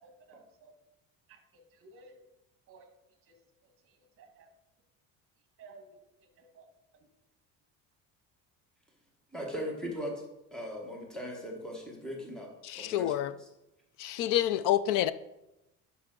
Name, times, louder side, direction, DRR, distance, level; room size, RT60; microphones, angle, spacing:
voice 1, 0.0-0.7 1.3-2.2 2.7-2.9 3.2-3.4 3.6-4.5 5.6-6.7 7.0-7.1, right 3 dB, 40° right, 5 dB, 1.5 m, -56 dB
voice 2, 9.3-10.2 10.5-13.5, equal, ahead, 0 dB, 1.2 m, -39 dB
voice 3, 12.6-13.3 14.0-15.1, left 12 dB, 70° left, 16 dB, 0.5 m, -28 dB
11.0 x 5.8 x 3.7 m, 0.94 s
cardioid pair, 170°, 33 cm